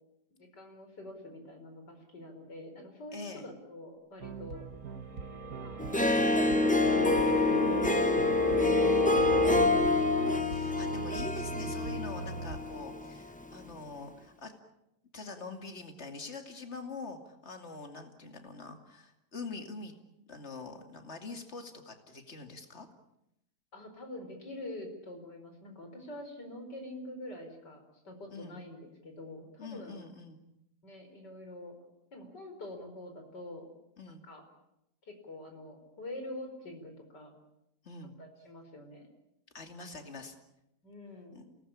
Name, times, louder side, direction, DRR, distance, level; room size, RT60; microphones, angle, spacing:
voice 1, 0.5-4.7 5.6-5.8 23.7-30.0 30.8-31.7 32.1-33.7 34.2-34.4 35.0-37.3 38.2-39.1 40.8-41.6, left 1 dB, 80° left, 5 dB, 5.4 m, -46 dB
voice 2, 3.1-3.5 9.9-14.5 15.1-19.9 20.3-22.9 28.3-28.6 29.6-30.4 34.0-34.2 37.8-38.1 39.5-40.3 41.3-41.4, left 3 dB, 40° left, 6 dB, 2.9 m, -44 dB
sound 1, 4.2-12.6, right 4 dB, 60° right, 1.9 m, -41 dB
sound 2, 5.2-9.7, left 2 dB, 20° right, 3.6 m, -29 dB
Harp, 5.8-13.2, left 2 dB, 5° left, 0.9 m, -28 dB
27.5 x 19.0 x 8.7 m, 0.83 s
omnidirectional pair, 1.8 m